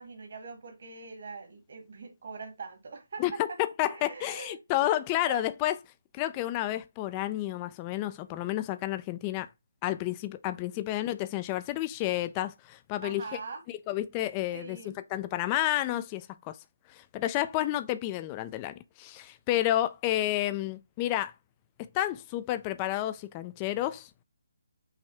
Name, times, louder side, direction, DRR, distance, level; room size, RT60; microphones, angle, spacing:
voice 1, 0.0-3.6 3.9-5.5 10.7-10.8 13.0-13.6 14.5-15.0, right 4 dB, 60° right, 1.6 m, -43 dB
voice 2, 3.6-5.7 6.1-9.5 9.8-13.2 13.9-16.6 16.9-21.3 21.9-24.1, left 14 dB, 20° left, 0.3 m, -30 dB
5.7 x 2.6 x 3.3 m
hypercardioid pair, 160°, 0 cm